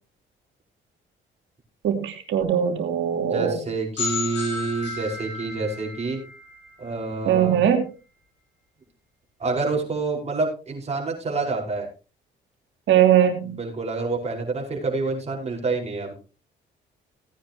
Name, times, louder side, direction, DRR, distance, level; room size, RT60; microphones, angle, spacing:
voice 1, 1.8-3.5 7.3-7.8 12.9-13.6, right 9 dB, 75° right, 5 dB, 2.8 m, -20 dB
voice 2, 3.2-6.2 6.8-7.6 9.4-11.9 13.4-16.1, right 3 dB, 35° right, 0 dB, 5.3 m, -28 dB
sound 1, 4.0-7.6, left 4 dB, 65° left, 7.7 m, -34 dB
17.5 x 9.8 x 3.0 m, 0.32 s
cardioid pair, 90°, 20 cm